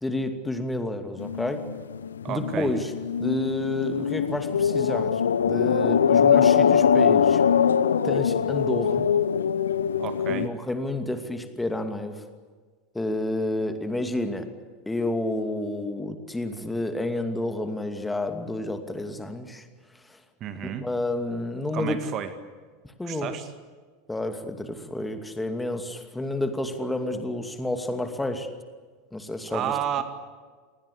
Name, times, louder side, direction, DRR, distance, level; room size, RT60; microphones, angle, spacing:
voice 1, 0.0-1.6 2.3-2.9 3.2-7.4 8.0-9.1 10.3-12.2 12.9-14.5 14.9-19.7 20.1-20.2 20.6-22.0 23.0-23.4 24.1-28.5 29.1-30.0, left 1 dB, 10° left, 7 dB, 2.5 m, -30 dB
sound 1, 1.2-10.5, left 7 dB, 70° left, 0.8 m, -22 dB
voice 2, 2.2-2.7 10.0-10.5 20.4-20.9 21.7-22.3 23.0-23.5 29.5-30.0, right 10 dB, 40° right, 10 dB, 2.0 m, -31 dB
28.5 x 20.0 x 8.4 m, 1.5 s
figure-of-eight pair, 80°, 0 cm